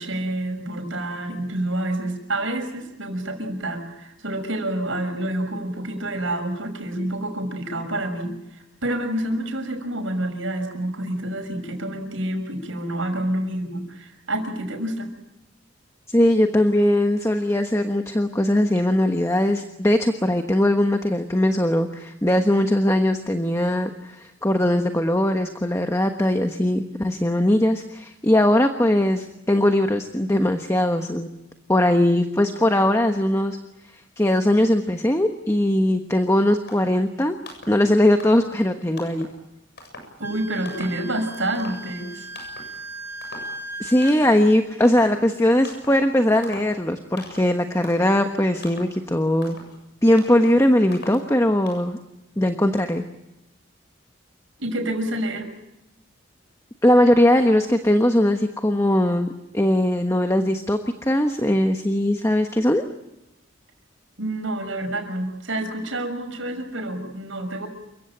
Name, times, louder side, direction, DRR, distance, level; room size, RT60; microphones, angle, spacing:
voice 1, 0.0-15.1 40.2-42.3 54.6-55.5 64.2-67.7, right 1 dB, 85° right, 4 dB, 6.2 m, -28 dB
voice 2, 16.1-31.3 31.7-33.6 34.2-37.4 37.7-39.3 43.8-49.6 50.0-52.0 52.4-53.0 56.8-59.3 59.5-62.8, left 1 dB, 15° left, 6 dB, 1.2 m, -20 dB
sound 1, 36.3-36.4 36.7-37.1 37.4-37.8 38.2-38.6 39.0-39.4 39.8-40.2 40.7-41.1 41.3-42.1 42.4-42.8 43.2-43.6 44.0-44.5 44.8-45.2 45.6-46.0 46.4-46.8 47.2-47.6 47.8-48.2 48.6-49.0 49.4-49.8 50.2-50.5 50.9-51.3 51.7-51.9, left 1 dB, 55° left, 7.4 m, -41 dB
Wind instrument woodwind instrument, 40.2-44.1, right 1 dB, 10° right, 4.7 m, -37 dB
29.0 x 16.5 x 9.0 m, 0.91 s
head